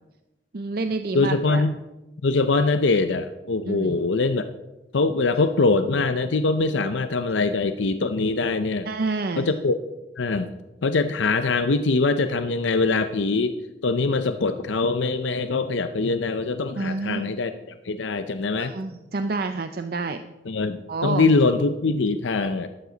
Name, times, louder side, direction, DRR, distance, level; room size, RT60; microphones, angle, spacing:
voice 1, 0.5-1.6 3.6-4.0 8.9-9.5 16.8-17.3 18.6-20.2 20.9-21.3, right 3 dB, 55° right, 8 dB, 0.5 m, -28 dB
voice 2, 1.1-1.8 2.2-4.5 4.9-8.9 9.4-9.8 10.2-10.5 10.8-13.6 13.8-18.7 20.5-22.7, left 3 dB, 85° left, 10 dB, 0.6 m, -23 dB
12.5 x 12.0 x 4.0 m, 1.0 s
head